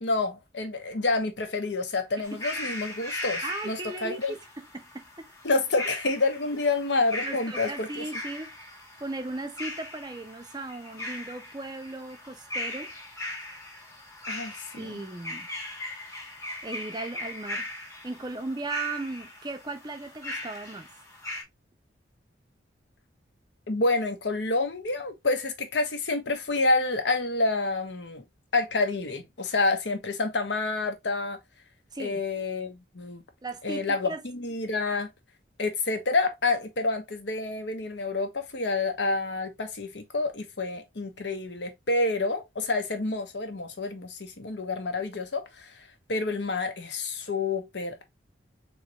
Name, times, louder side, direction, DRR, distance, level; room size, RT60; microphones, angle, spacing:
voice 1, 0.0-4.3 5.4-8.0 14.3-14.8 23.7-28.2 28.5-31.4 32.0-33.2 33.6-35.1 35.6-48.0, left 3 dB, 70° left, 0.9 m, -28 dB
sound 1, 2.2-21.4, left 1 dB, 15° left, 1.0 m, -39 dB
voice 2, 3.4-4.4 4.7-5.3 7.2-8.5 9.0-12.9 14.7-15.5 16.6-17.7 18.0-20.9 31.9-32.2 33.4-34.2, right 2 dB, 20° right, 0.5 m, -37 dB
3.6 x 3.1 x 2.8 m
head